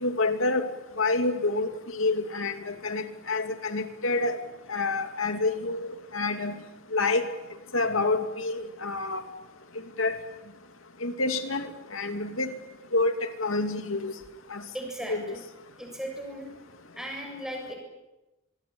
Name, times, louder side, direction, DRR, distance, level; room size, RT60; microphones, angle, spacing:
voice 1, 0.0-0.6 1.0-4.4 4.7-6.6 6.9-7.3 7.7-9.2 10.0-10.2 11.0-12.5 12.9-14.1 14.5-14.6 15.1-15.3, left 3 dB, 85° left, 7 dB, 2.5 m, -28 dB
voice 2, 14.7-15.4 15.8-16.5 16.9-17.7, right 1 dB, 5° right, 1 dB, 7.4 m, -37 dB
25.5 x 21.5 x 8.9 m, 1.0 s
head